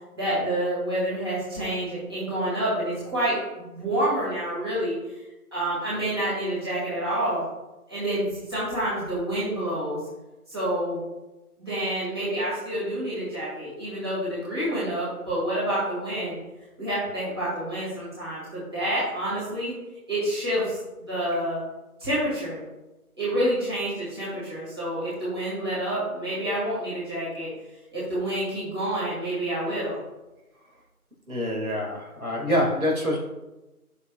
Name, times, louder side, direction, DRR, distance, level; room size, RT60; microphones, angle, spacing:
voice 1, 0.1-5.2 5.5-7.4 7.9-10.0 10.5-11.0 11.6-16.4 16.8-19.7 20.1-21.6 22.0-22.6 23.2-27.5 27.9-30.0, right 1 dB, 15° right, -10 dB, 2.3 m, -28 dB
voice 2, 31.3-33.3, equal, 65° right, -1 dB, 2.6 m, -26 dB
9.6 x 6.5 x 2.5 m, 1.0 s
figure-of-eight pair, 165°, 46 cm